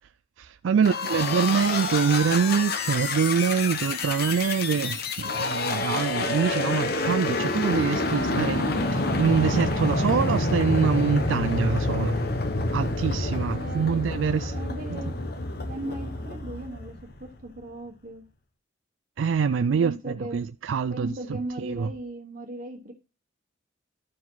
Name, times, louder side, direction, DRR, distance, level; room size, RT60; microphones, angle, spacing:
voice 1, 0.4-12.2 12.7-14.6 14.9-15.0 19.2-21.9, right 6 dB, 90° right, 0.4 m, -25 dB
sound 1, 0.8-17.5, left 2 dB, 55° left, 1.1 m, -28 dB
voice 2, 13.5-14.0 14.5-15.2 15.7-18.3 19.8-20.4 20.9-22.9, right 1 dB, 45° right, 1.3 m, -37 dB
12.0 x 4.9 x 3.9 m
head